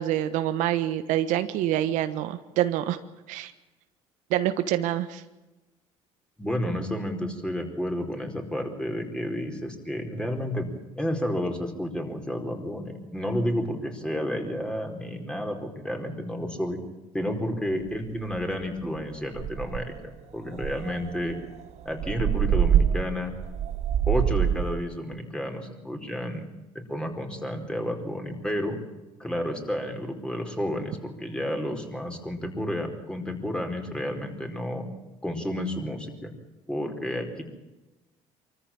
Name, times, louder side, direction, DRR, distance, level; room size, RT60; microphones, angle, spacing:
voice 1, 0.0-3.0 3.3-3.5 4.3-5.2, right 12 dB, 75° right, 10 dB, 1.3 m, -26 dB
voice 2, 6.4-10.7 11.0-16.8 17.1-21.4 21.8-23.3 24.1-26.4 26.9-28.8 29.2-34.9 35.2-36.3 36.7-37.4, equal, 5° left, 4 dB, 4.7 m, -31 dB
sound 1, 17.9-18.0 18.4-18.6 19.0-19.1 19.3-20.0 20.6-24.8, right 9 dB, 55° right, 1.1 m, -25 dB
24.0 x 14.5 x 8.9 m, 1.1 s
supercardioid pair, 80°, 13 cm